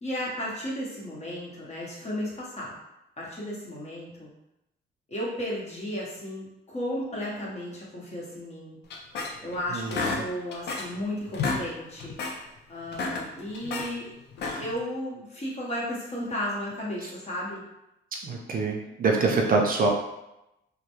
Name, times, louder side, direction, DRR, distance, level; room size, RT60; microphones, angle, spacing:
voice 1, 0.0-2.8 3.2-4.3 5.1-8.8 9.4-12.2 12.7-14.1 14.6-17.6, left 1 dB, 35° left, -5 dB, 0.9 m, -34 dB
sound 1, 8.9-9.6 9.9-11.0 11.3-11.7 12.0-12.4 12.8-13.9 14.3-14.8, left 4 dB, 60° left, 0.4 m, -31 dB
voice 2, 9.7-10.2 17.0-17.1 18.2-19.9, right 3 dB, 45° right, 0 dB, 0.4 m, -25 dB
2.2 x 2.1 x 2.9 m, 0.88 s
cardioid pair, 90°, 20 cm